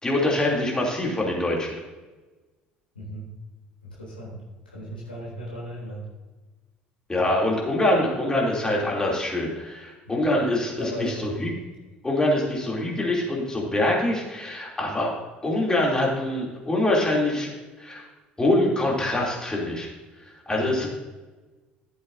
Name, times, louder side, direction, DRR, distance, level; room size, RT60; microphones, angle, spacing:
voice 1, 0.0-1.7 7.1-11.5 12.0-15.1 15.4-17.5 17.8-18.0 18.4-19.9 20.5-20.9, left 1 dB, 15° left, -2 dB, 3.2 m, -24 dB
voice 2, 2.9-3.3 3.8-6.1 10.1-10.3 10.8-11.5 20.5-20.7, equal, 85° left, -6 dB, 3.4 m, -37 dB
14.0 x 8.0 x 2.8 m, 1.2 s
figure-of-eight pair, 60°, 5 cm